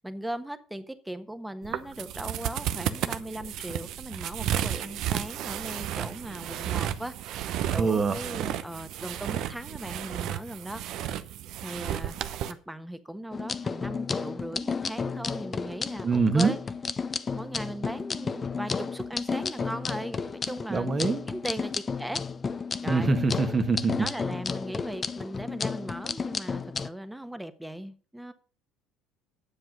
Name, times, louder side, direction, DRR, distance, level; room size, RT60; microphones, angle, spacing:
voice 1, 0.0-10.8 11.6-12.1 12.5-16.6 17.3-20.9 21.3-22.2 22.8-23.1 24.0-28.3, right 1 dB, 5° right, 10 dB, 1.3 m, -38 dB
sound 1, 1.6-12.5, right 11 dB, 60° right, 0.8 m, -33 dB
voice 2, 7.7-8.2 16.0-16.5 20.7-21.2 22.9-23.9, right 4 dB, 30° right, 9 dB, 1.5 m, -24 dB
sound 2, 13.3-26.9, left 5 dB, 30° left, 0.7 m, -32 dB
10.5 x 7.5 x 5.3 m, 0.38 s
hypercardioid pair, 65°, 0 cm